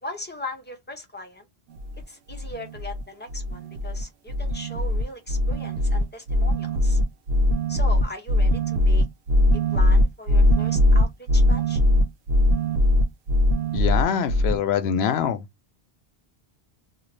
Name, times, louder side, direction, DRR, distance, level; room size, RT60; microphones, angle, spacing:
voice 1, 0.0-1.4 2.1-7.0 7.7-9.1 9.7-11.8, left 1 dB, 15° left, 0.5 m, -38 dB
sound 1, 1.8-2.0 2.3-3.0 3.3-4.0 4.3-14.6, left 1 dB, 90° right, 0.8 m, -21 dB
voice 2, 13.7-15.4, left 8 dB, 85° left, 0.8 m, -24 dB
2.5 x 2.4 x 3.1 m
omnidirectional pair, 1.1 m